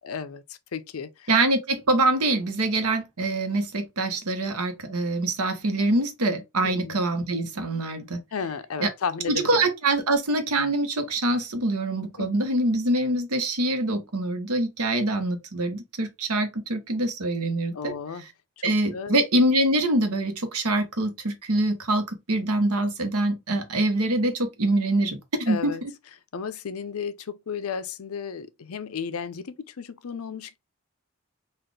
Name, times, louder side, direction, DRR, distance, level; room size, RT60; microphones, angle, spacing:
voice 1, 0.0-1.3 6.6-7.0 8.3-9.7 12.2-12.3 17.7-18.3 18.6-19.2 25.5-25.8 26.3-30.6, left 6 dB, 70° left, 0.5 m, -34 dB
voice 2, 1.3-8.2 8.8-8.9 9.3-17.9 18.6-25.7, right 2 dB, 80° right, 0.9 m, -24 dB
4.1 x 2.4 x 3.2 m
head